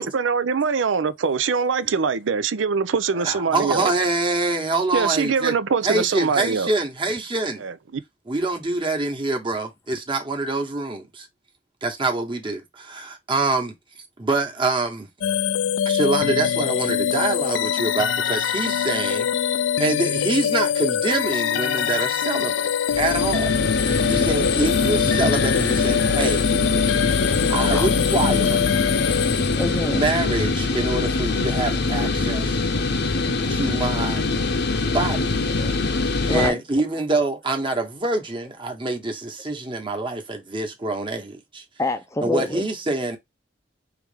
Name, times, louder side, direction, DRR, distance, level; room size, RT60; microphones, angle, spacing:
voice 1, 0.0-3.9 4.9-6.7 7.6-7.7, right 5 dB, 90° right, 0.5 m, -23 dB
voice 2, 3.2-5.6 5.8-7.6 8.3-11.3 11.8-13.7 14.2-15.1 15.8-19.3 19.8-23.5 23.8-26.5 26.7-27.0 27.5-28.6 29.9-32.6 33.5-34.3 34.8-35.3 36.3-41.6 42.2-43.2, right 2 dB, 25° right, 1.2 m, -25 dB
sound 1, 15.2-30.0, left 8 dB, 80° left, 0.4 m, -23 dB
sound 2, 22.9-36.5, left 3 dB, 60° left, 0.8 m, -23 dB
voice 3, 29.2-30.0 35.6-35.8 36.3-36.6 41.8-42.7, left 2 dB, 15° left, 0.5 m, -27 dB
4.9 x 3.2 x 3.4 m
head